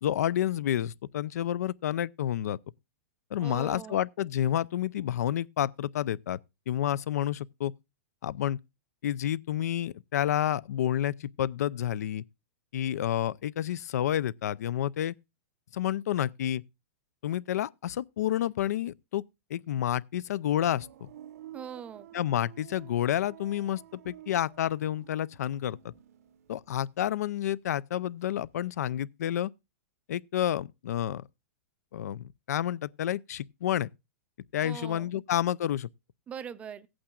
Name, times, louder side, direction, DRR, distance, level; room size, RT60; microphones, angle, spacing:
voice 1, 0.0-2.6 3.3-6.4 6.7-7.7 8.2-8.6 9.0-12.2 12.7-15.1 15.7-16.6 17.2-19.2 19.5-21.1 22.1-25.9 26.5-29.5 30.1-31.2 31.9-33.9 34.5-35.9, left 11 dB, 75° left, 0.5 m, -29 dB
voice 2, 3.4-4.0 21.5-22.1 34.6-35.1 36.3-36.9, right 8 dB, 15° right, 0.4 m, -41 dB
sound 1, 20.6-27.4 27.7-28.5, right 12 dB, 65° right, 0.6 m, -52 dB
16.5 x 8.7 x 2.4 m
supercardioid pair, 160°, 9 cm